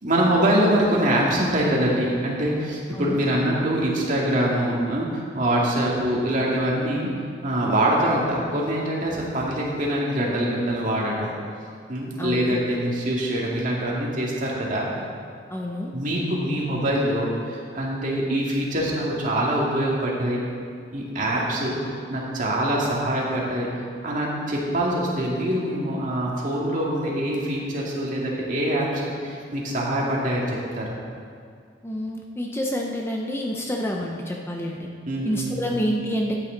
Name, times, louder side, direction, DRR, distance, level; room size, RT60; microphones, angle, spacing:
voice 1, 0.0-7.1 7.4-11.3 11.9-14.9 15.9-20.4 20.9-23.7 24.0-31.0 35.1-35.8, right 1 dB, 45° right, -4 dB, 2.2 m, -24 dB
voice 2, 12.2-12.6 15.5-15.9 31.8-34.9 35.2-36.3, equal, 15° left, 0 dB, 0.7 m, -28 dB
12.5 x 9.0 x 4.0 m, 2.3 s
head